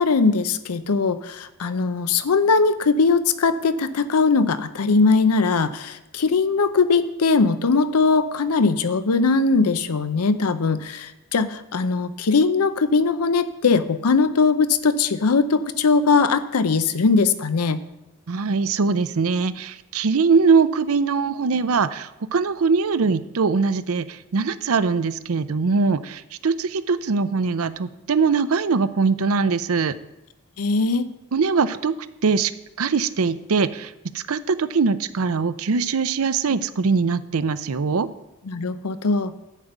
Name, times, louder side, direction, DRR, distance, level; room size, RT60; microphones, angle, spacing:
voice 1, 0.0-17.8 30.6-31.1 38.5-39.3, left 4 dB, 90° left, 13 dB, 0.6 m, -20 dB
voice 2, 18.3-29.9 31.3-31.9 32.2-32.5 32.8-38.1, right 5 dB, 75° right, 14 dB, 0.5 m, -22 dB
11.0 x 5.2 x 8.0 m, 0.95 s
head